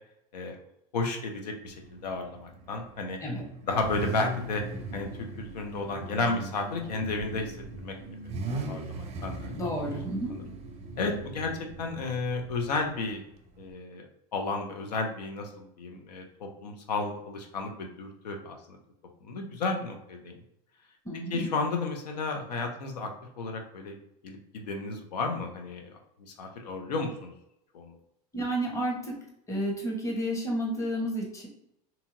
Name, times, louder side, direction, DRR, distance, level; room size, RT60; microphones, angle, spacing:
voice 1, 0.9-3.2 3.6-4.6 4.9-5.1 5.4-7.9 8.5-9.7 11.0-11.5 11.8-13.2 13.6-14.1 14.3-18.8 19.2-20.4 21.3-23.1 23.4-24.0 24.2-27.3 27.7-27.9, left 3 dB, 85° left, 3 dB, 0.5 m, -33 dB
Car / Idling / Accelerating revving vroom, 1.6-13.7, right 2 dB, 35° right, 0.5 m, -39 dB
voice 2, 9.5-10.4 21.0-21.5 28.3-29.2 29.5-31.5, equal, 15° left, -1 dB, 1.0 m, -31 dB
2.8 x 2.7 x 2.5 m, 0.79 s
hypercardioid pair, 90°, 20 cm